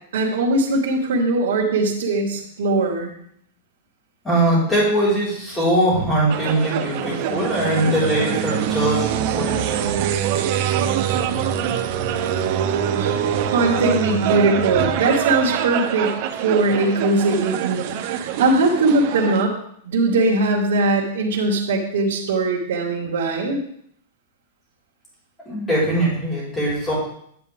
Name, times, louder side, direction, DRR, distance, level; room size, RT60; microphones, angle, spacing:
voice 1, 0.1-3.1 13.0-19.5 19.8-23.6, right 2 dB, 75° right, -4 dB, 2.0 m, -20 dB
voice 2, 4.2-10.0 14.7-14.8 25.4-26.9, right 1 dB, 10° left, -8 dB, 4.6 m, -21 dB
sound 1, 6.3-19.4, right 9 dB, 40° right, 0.7 m, -24 dB
9.7 x 8.4 x 3.5 m, 0.68 s
supercardioid pair, 165°, 0 cm